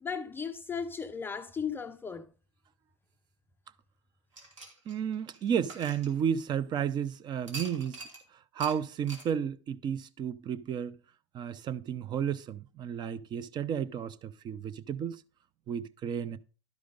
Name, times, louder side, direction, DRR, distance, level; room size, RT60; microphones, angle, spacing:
voice 1, 0.0-2.3, left 6 dB, 15° left, 0.5 m, -36 dB
sound 1, 4.3-6.7 7.5-8.2 8.6-8.8 9.1-9.3, right 3 dB, 90° right, 2.8 m, -45 dB
voice 2, 4.9-8.0 8.5-11.0 11.3-15.2 15.7-16.4, right 8 dB, 30° right, 0.7 m, -32 dB
12.0 x 4.9 x 5.2 m
hypercardioid pair, 110°, 16 cm